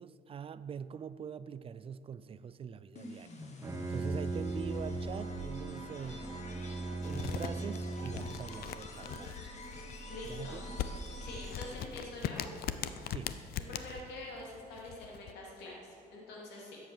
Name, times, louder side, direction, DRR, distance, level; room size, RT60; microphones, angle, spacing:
voice 1, 0.0-3.3 3.9-6.4 7.0-9.6 10.3-10.8 13.1-13.4, right 7 dB, 35° right, 15 dB, 0.4 m, -44 dB
sound 1, 2.9-12.1, left 1 dB, 40° left, 1.8 m, -46 dB
Bowed string instrument, 3.4-8.5, right 2 dB, 20° right, 0.9 m, -39 dB
sound 2, 7.0-15.3, left 10 dB, 65° left, 0.6 m, -41 dB
voice 2, 10.1-10.7 11.2-12.5 13.7-16.8, left 2 dB, 85° left, -3 dB, 3.1 m, -45 dB
13.5 x 8.2 x 6.5 m, 2.9 s
cardioid pair, 110°, 17 cm